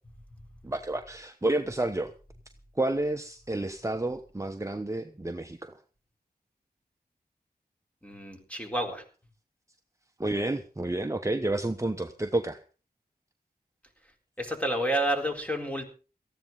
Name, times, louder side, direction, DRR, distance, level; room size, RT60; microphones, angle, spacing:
voice 1, 0.6-2.1 2.7-5.7 10.2-12.6, right 2 dB, 20° right, 6 dB, 1.0 m, -30 dB
voice 2, 8.0-9.0 14.4-15.8, right 1 dB, 10° left, 3 dB, 4.2 m, -29 dB
18.5 x 14.5 x 4.0 m, 0.36 s
wide cardioid pair, 80°, 16 cm